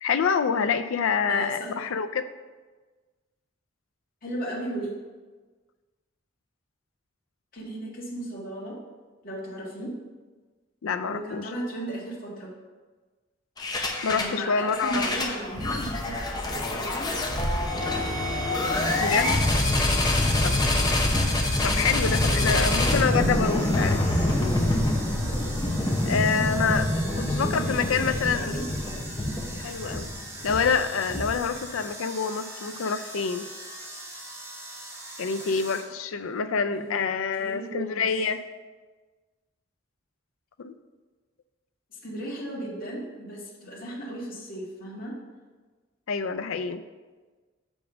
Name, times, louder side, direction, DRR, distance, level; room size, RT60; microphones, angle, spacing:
voice 1, 0.0-2.3 10.8-11.5 14.0-15.1 15.7-15.8 19.0-19.3 20.4-20.6 21.6-24.0 26.0-28.6 29.6-30.1 30.4-33.5 35.2-38.4 40.6-40.8 46.1-46.8, left 5 dB, 90° left, 10 dB, 0.5 m, -27 dB
voice 2, 1.3-1.7 4.2-4.9 7.5-8.8 9.2-9.9 11.0-12.5 14.1-17.1 21.6-22.7 26.9-28.7 36.7-37.1 37.4-38.0 41.9-45.1, right 1 dB, 45° left, -5 dB, 1.8 m, -36 dB
sound 1, 13.6-14.4 14.7-31.6, left 1 dB, 20° left, 0.8 m, -26 dB
sound 2, 18.6-35.9, right 1 dB, 15° right, 1.4 m, -41 dB
6.1 x 5.3 x 5.9 m, 1.3 s
head